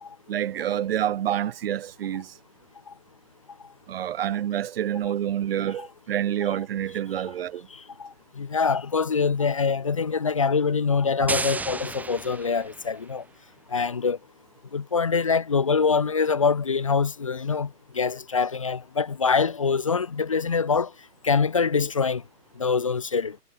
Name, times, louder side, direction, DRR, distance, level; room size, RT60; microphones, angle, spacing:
voice 1, 0.3-2.4 3.9-7.7, right 11 dB, 40° right, 4.6 m, -28 dB
voice 2, 8.0-13.2 13.7-14.2 14.7-20.9 21.2-22.2 22.6-23.4, left 5 dB, 20° left, 0.6 m, -24 dB
sound 1, 11.3-13.1, right 3 dB, 5° right, 2.7 m, -32 dB
figure-of-eight pair, 150°, 46 cm